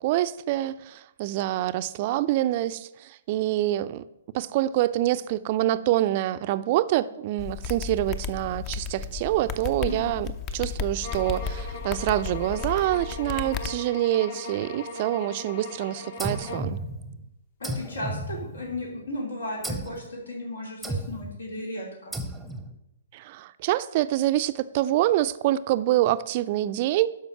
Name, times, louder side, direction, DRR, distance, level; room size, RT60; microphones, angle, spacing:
voice 1, 0.0-4.0 4.3-10.3 10.5-16.8 23.1-27.1, right 14 dB, 40° right, 0.5 m, -26 dB
sound 1, 7.4-13.7, left 5 dB, 30° left, 0.7 m, -34 dB
sound 2, 11.0-16.8, left 2 dB, 50° left, 1.6 m, -39 dB
sound 3, 16.2-17.2 17.6-18.9 19.6-20.1 20.8-21.4 22.1-22.8, right 1 dB, ahead, 0.8 m, -34 dB
voice 2, 17.6-22.1, left 1 dB, 75° left, 2.9 m, -35 dB
12.0 x 5.0 x 5.7 m
figure-of-eight pair, 130°, 0 cm